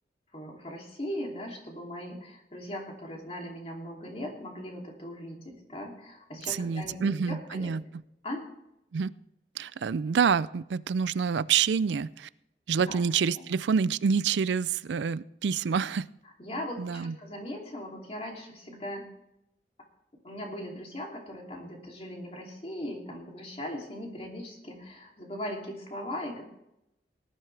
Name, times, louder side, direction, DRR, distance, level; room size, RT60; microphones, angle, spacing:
voice 1, 0.3-7.7 8.2-8.4 12.8-13.0 13.4-13.6 16.4-19.1 20.2-26.4, left 1 dB, 35° left, 0 dB, 2.8 m, -39 dB
voice 2, 6.5-7.8 8.9-9.1 9.6-12.3 12.7-16.1 16.8-17.1, right 6 dB, 80° right, 18 dB, 0.4 m, -27 dB
18.5 x 11.0 x 3.3 m, 0.82 s
head